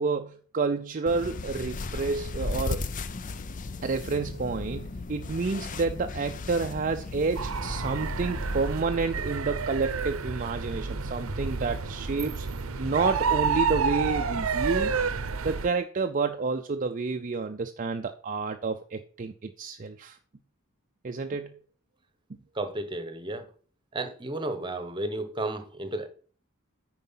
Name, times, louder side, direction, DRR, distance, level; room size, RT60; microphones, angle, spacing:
voice 1, 0.0-2.8 3.8-12.5 12.8-14.9 15.4-20.2 21.0-21.6, right 4 dB, 40° right, 0.5 m, -29 dB
sound 1, 1.1-8.8, left 3 dB, 40° left, 0.5 m, -36 dB
sound 2, 7.4-15.7, right 5 dB, 75° right, 0.7 m, -29 dB
voice 2, 22.5-23.5 23.9-26.1, right 2 dB, 25° right, 1.1 m, -33 dB
9.3 x 4.7 x 5.7 m
head